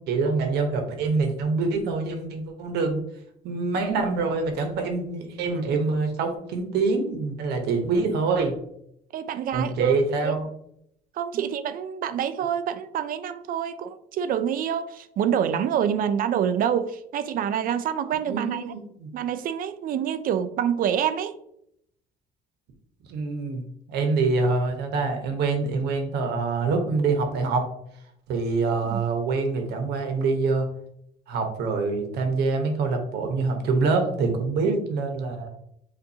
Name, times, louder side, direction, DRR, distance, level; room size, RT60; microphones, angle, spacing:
voice 1, 0.1-3.0 3.4-8.5 9.5-10.4 11.3-11.4 18.3-19.1 23.1-27.7 28.3-30.7 31.3-35.5, right 4 dB, 75° right, 1.0 m, -25 dB
voice 2, 9.1-10.3 11.2-18.6 19.1-21.3 28.8-29.0 34.6-34.8, right 9 dB, 55° right, 0.4 m, -27 dB
6.9 x 2.6 x 2.8 m
cardioid pair, 110°, 17 cm